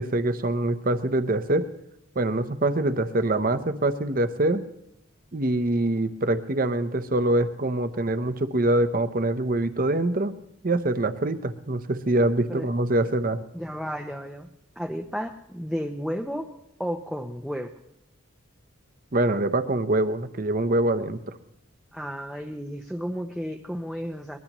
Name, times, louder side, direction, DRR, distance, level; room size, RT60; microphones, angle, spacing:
voice 1, 0.0-1.7 2.2-4.6 5.3-10.3 10.6-13.4 19.1-21.3, right 1 dB, 45° right, 11 dB, 0.8 m, -24 dB
voice 2, 13.5-14.5 14.8-16.5 16.8-17.7 21.9-24.4, equal, ahead, 2 dB, 0.6 m, -32 dB
23.0 x 20.5 x 3.0 m, 0.84 s
head